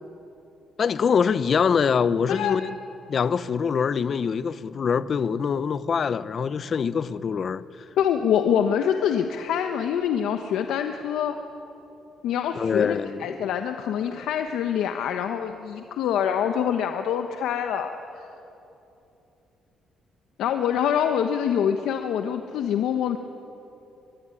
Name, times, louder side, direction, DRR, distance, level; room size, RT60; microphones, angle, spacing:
voice 1, 0.8-2.8 3.1-7.6 12.6-13.4, left 6 dB, 50° left, 0.9 m, -24 dB
voice 2, 8.0-11.4 12.2-18.3 20.4-23.2, left 8 dB, 85° left, 1.2 m, -25 dB
23.5 x 22.0 x 9.9 m
cardioid pair, 90°, 0 cm